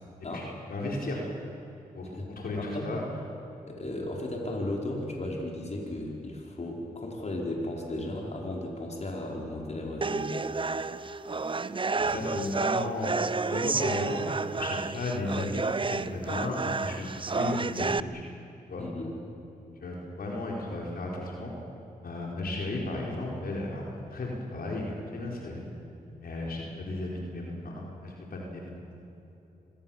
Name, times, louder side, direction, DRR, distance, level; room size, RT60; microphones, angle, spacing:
voice 1, 0.7-1.2 1.9-3.0 12.0-13.1 13.5-18.2 18.7-18.8 19.8-21.5 22.0-25.7 26.2-28.6, left 2 dB, 70° left, -2 dB, 4.6 m, -34 dB
voice 2, 2.1-2.9 3.7-10.3 12.0-12.2 18.8-19.2, left 1 dB, 45° left, -1 dB, 4.9 m, -35 dB
sound 1, 10.0-18.0, right 4 dB, 30° right, 0.8 m, -30 dB
25.5 x 21.0 x 7.4 m, 2.9 s
cardioid pair, 50°, 16 cm